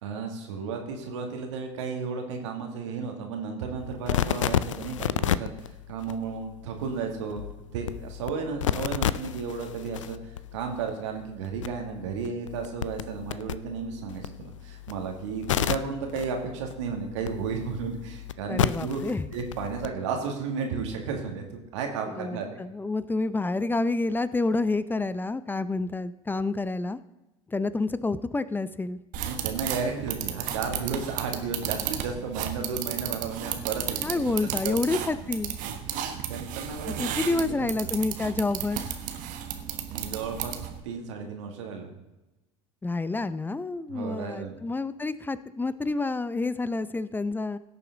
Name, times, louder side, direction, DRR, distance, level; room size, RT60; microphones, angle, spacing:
voice 1, 0.0-5.5 5.9-7.5 7.7-19.0 19.3-21.4 21.7-22.5 29.2-34.4 34.6-34.8 35.9-37.7 39.9-40.5 40.8-41.9 43.9-44.6, right 5 dB, 75° right, 3 dB, 2.1 m, -33 dB
sound 1, 3.8-19.9, left 10 dB, 85° left, 0.4 m, -32 dB
voice 2, 18.5-19.3 22.1-27.0 27.5-29.0 34.0-35.6 36.9-38.9 42.8-47.6, left 3 dB, 10° left, 15 dB, 0.6 m, -28 dB
sound 2, 29.1-40.8, right 10 dB, 55° right, 1.3 m, -34 dB
17.0 x 6.8 x 3.9 m, 1.0 s
hypercardioid pair, 75°, 16 cm